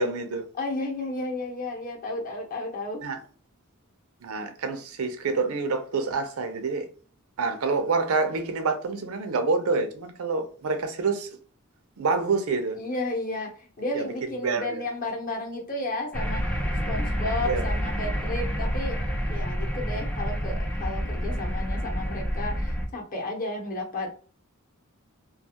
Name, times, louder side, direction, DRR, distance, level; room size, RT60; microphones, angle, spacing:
voice 1, 0.0-0.4 3.0-3.2 4.2-6.9 7.4-11.3 12.0-12.8 13.9-14.9 17.4-17.6, right 4 dB, 85° right, 0.5 m, -27 dB
voice 2, 0.5-3.0 12.8-16.6 16.9-19.0 19.3-24.1, left 2 dB, 40° left, 0.8 m, -33 dB
sound 1, 16.1-22.9, equal, 5° left, 0.4 m, -28 dB
2.4 x 2.3 x 2.8 m
head